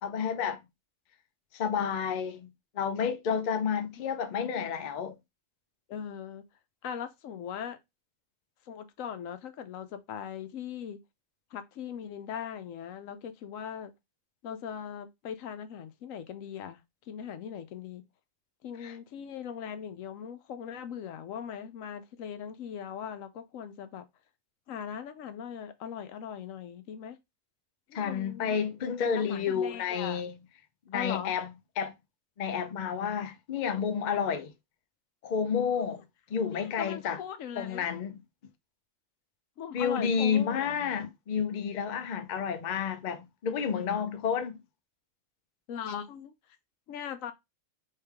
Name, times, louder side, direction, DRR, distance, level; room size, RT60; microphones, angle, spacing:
voice 1, 0.0-0.6 1.5-2.5 2.7-5.2 18.8-18.9 27.9-30.3 30.9-31.5 31.8-31.9 32.4-34.5 35.2-36.0 36.3-37.2 37.6-38.1 39.7-44.6, left 7 dB, 55° left, 0.5 m, -30 dB
voice 2, 5.9-6.4 6.8-7.8 8.7-11.0 11.5-13.9 14.4-16.8 17.1-18.0 18.6-24.1 24.7-27.2 27.9-28.6 29.0-30.2 30.9-31.3 36.5-37.8 39.6-40.9 45.7-46.3 46.9-47.3, left 8 dB, 80° left, 1.0 m, -40 dB
3.3 x 3.2 x 3.3 m
omnidirectional pair, 1.4 m